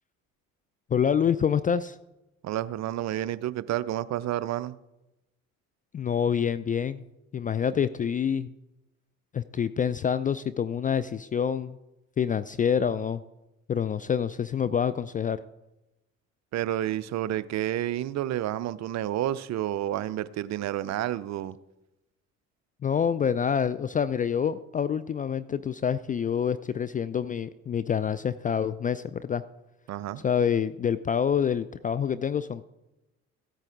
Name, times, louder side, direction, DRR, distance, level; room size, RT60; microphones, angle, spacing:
voice 1, 0.9-2.0 5.9-7.0 7.3-8.5 9.3-11.8 12.2-13.2 13.7-15.4 22.8-29.4 30.2-32.6, left 7 dB, 20° left, 14 dB, 0.3 m, -27 dB
voice 2, 2.4-4.7 16.5-21.6 29.9-30.2, right 12 dB, 45° right, 17 dB, 0.5 m, -30 dB
15.0 x 9.0 x 3.7 m, 0.95 s
hypercardioid pair, 55°, 40 cm